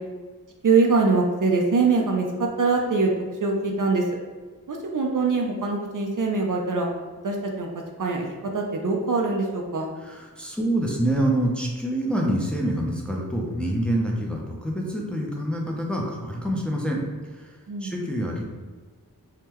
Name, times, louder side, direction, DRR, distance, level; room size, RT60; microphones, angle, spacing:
voice 1, 0.6-3.1 3.4-4.0 4.7-6.9 7.2-7.7 8.0-8.3 8.5-9.9 17.7-18.0, right 4 dB, 55° right, 1 dB, 0.4 m, -23 dB
voice 2, 10.0-17.0 17.3-17.5 17.8-18.4, right 1 dB, 5° left, -2 dB, 0.5 m, -26 dB
3.5 x 2.2 x 2.9 m, 1.4 s
wide cardioid pair, 60°, 39 cm